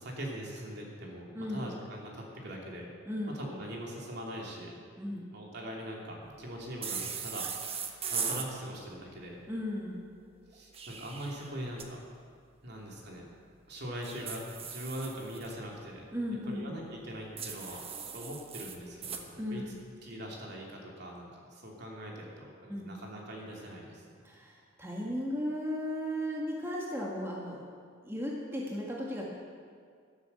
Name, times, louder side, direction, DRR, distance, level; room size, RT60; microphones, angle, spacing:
voice 1, 0.0-2.9 3.3-4.8 5.3-7.5 7.8-9.4 10.5-12.0 12.6-13.2 13.7-16.0 16.5-17.8 18.1-19.6 20.0-24.2, equal, 55° right, -2 dB, 3.0 m, -42 dB
voice 2, 3.1-3.5 5.0-5.3 9.5-10.0 16.1-16.7 19.4-19.7 22.7-22.9 24.2-27.6 28.0-29.3, equal, 10° right, -4 dB, 1.7 m, -36 dB
sound 1, 6.8-8.5 10.5-11.9 14.0-15.5 17.4-19.2, right 6 dB, 30° right, 1.1 m, -38 dB
13.0 x 12.5 x 7.0 m, 2.1 s
head